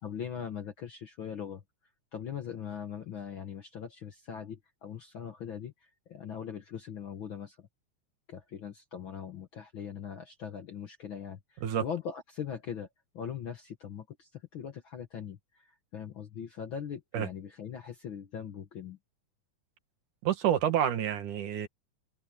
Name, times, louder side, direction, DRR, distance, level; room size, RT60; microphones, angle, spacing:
voice 1, 0.0-1.6 2.1-7.7 8.3-12.9 13.1-19.0, left 8 dB, 60° left, 1.4 m, -41 dB
voice 2, 20.2-21.7, right 10 dB, 75° right, 3.1 m, -28 dB
open air
omnidirectional pair, 3.6 m